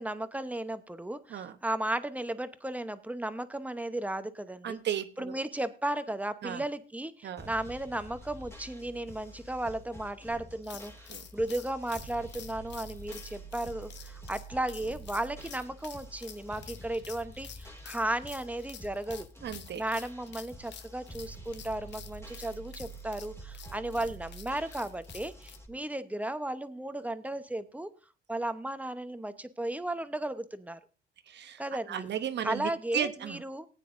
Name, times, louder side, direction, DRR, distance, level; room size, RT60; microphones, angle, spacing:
voice 1, 0.0-4.8 5.2-19.3 19.8-27.9 28.3-30.8 31.6-32.1 32.4-33.7, right 1 dB, 5° right, 11 dB, 0.9 m, -35 dB
voice 2, 4.6-5.4 6.4-6.6 7.2-7.5 11.1-11.3 19.4-19.8 31.3-31.6 31.9-33.4, right 9 dB, 60° right, 10 dB, 1.0 m, -35 dB
sound 1, 7.4-25.7, right 2 dB, 15° left, 2.5 m, -48 dB
sound 2, 10.6-25.6, left 9 dB, 65° left, 0.9 m, -49 dB
18.5 x 9.1 x 2.6 m, 0.34 s
cardioid pair, 90°, 20 cm